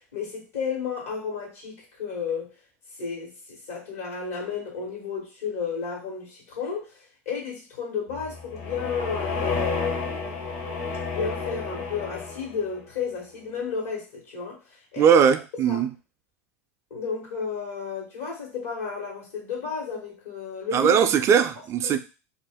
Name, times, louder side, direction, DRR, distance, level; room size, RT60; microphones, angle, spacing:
voice 1, 0.1-2.5 3.0-6.9 7.2-10.2 11.1-14.6 14.9-15.2 15.7-15.8 16.9-20.9 21.8-22.0, left 6 dB, 85° left, 1.2 m, -32 dB
sound 1, 8.1-12.7, left 4 dB, 70° left, 0.9 m, -31 dB
voice 2, 15.0-15.9 20.7-22.0, right 7 dB, 40° right, 0.4 m, -19 dB
2.5 x 2.2 x 3.4 m
hypercardioid pair, 90°, 7 cm